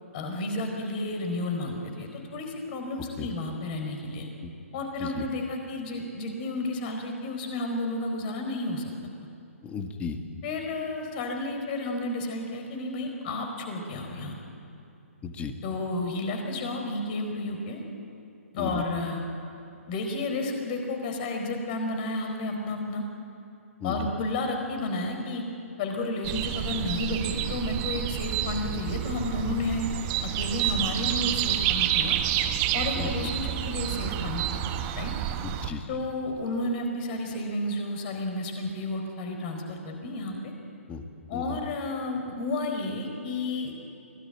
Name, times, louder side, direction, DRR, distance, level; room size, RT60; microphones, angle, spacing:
voice 1, 0.1-4.3 4.7-8.9 10.4-14.4 15.6-17.8 18.5-19.2 19.9-23.0 23.8-25.4 25.8-29.9 30.2-32.2 32.7-35.1 35.9-40.5 41.3-43.7, left 2 dB, 40° left, 4 dB, 4.3 m, -32 dB
voice 2, 9.6-10.2 15.2-15.5 18.6-18.8 23.8-24.1 32.9-33.3 35.4-35.9 40.9-41.0 41.3-41.6, left 6 dB, 15° left, 6 dB, 1.6 m, -35 dB
sound 1, 26.2-35.7, right 11 dB, 30° right, 1.1 m, -29 dB
25.0 x 18.0 x 9.0 m, 2.7 s
figure-of-eight pair, 130°, 8 cm